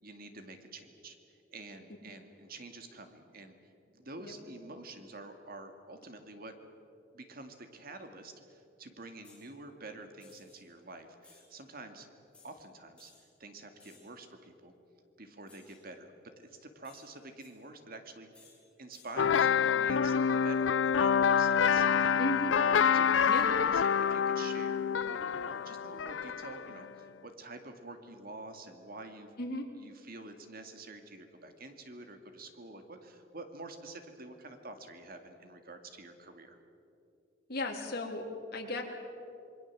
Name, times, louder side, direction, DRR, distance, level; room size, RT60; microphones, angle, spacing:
voice 1, 0.0-6.5 7.1-12.1 12.4-14.7 15.2-18.5 18.8-22.5 22.9-29.3 29.8-36.6, right 2 dB, 55° right, 7 dB, 2.3 m, -48 dB
sound 1, 9.2-9.5 10.2-10.6 11.2-11.5 12.3-12.5 13.0-13.2 13.8-14.2 15.5-15.8 16.8-17.5 18.3-18.6 18.9-19.1, left 4 dB, 5° left, 6.8 m, -60 dB
sound 2, 19.2-26.9, left 7 dB, 90° left, 0.5 m, -27 dB
voice 2, 22.2-22.5 23.3-23.5 29.4-29.7 37.5-38.2 38.5-38.8, left 2 dB, 55° left, 1 dB, 3.4 m, -35 dB
27.5 x 22.0 x 7.5 m, 2.7 s
head